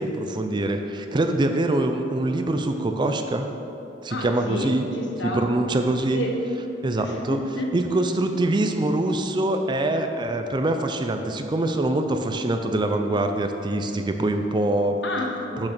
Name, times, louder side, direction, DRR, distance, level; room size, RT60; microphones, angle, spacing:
voice 1, 0.0-3.5 4.0-4.9 5.2-6.2 6.8-7.4 7.7-15.0 15.6-15.7, right 2 dB, 25° right, 6 dB, 0.4 m, -24 dB
voice 2, 4.1-5.5 6.1-6.3 7.0-7.7 15.0-15.7, left 1 dB, 65° left, 0 dB, 1.1 m, -30 dB
6.5 x 6.2 x 6.0 m, 3.0 s
head